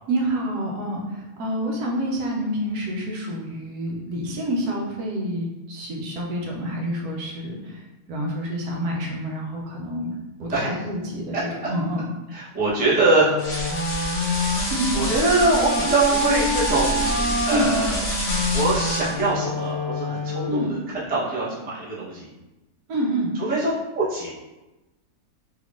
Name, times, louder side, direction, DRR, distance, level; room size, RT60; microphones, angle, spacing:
voice 1, 0.1-7.8 8.1-10.1 10.4-11.4 11.7-12.1 14.7-14.9 17.5-17.7 20.5-20.8 22.9-23.3, equal, 75° right, -1 dB, 1.2 m, -27 dB
voice 2, 11.3-11.7 12.3-13.4 14.0-18.1 18.5-22.3 23.3-24.3, right 2 dB, 10° right, -8 dB, 0.4 m, -24 dB
Wind instrument woodwind instrument, 13.3-20.8, left 1 dB, 75° left, 1.1 m, -27 dB
sound 1, 13.4-19.3, left 1 dB, 50° left, 0.6 m, -28 dB
3.5 x 3.1 x 2.4 m, 1.1 s
omnidirectional pair, 1.7 m